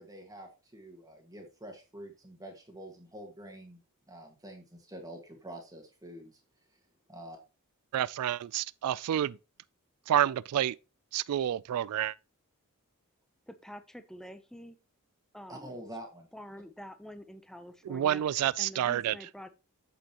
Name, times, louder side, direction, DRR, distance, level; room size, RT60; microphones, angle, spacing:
voice 1, 0.0-3.8 4.1-6.3 7.1-7.4 15.5-16.3, right 1 dB, 15° right, 1.7 m, -46 dB
voice 2, 7.9-9.4 10.1-10.8 11.1-12.1 17.9-19.2, right 11 dB, 75° right, 0.3 m, -29 dB
voice 3, 13.5-14.8 15.3-15.7 16.3-18.2 18.6-19.5, equal, ahead, 0.6 m, -47 dB
8.5 x 7.7 x 2.9 m
head